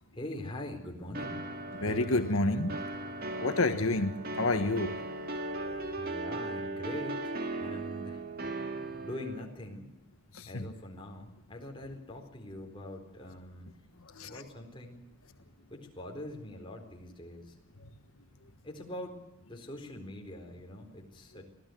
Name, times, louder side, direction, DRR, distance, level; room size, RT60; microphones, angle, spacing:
voice 1, 0.1-1.5 5.9-8.3 8.9-9.9 10.5-13.7 14.2-15.0 15.7-17.5 18.6-19.2 19.4-21.4, left 1 dB, 25° left, 4.1 m, -43 dB
sound 1, 1.1-9.4, right 2 dB, 45° right, 2.2 m, -38 dB
voice 2, 1.8-2.7 3.4-4.9 5.6-5.8 10.3-10.6 14.2-14.4, left 2 dB, 80° left, 1.4 m, -29 dB
25.5 x 16.5 x 7.9 m
head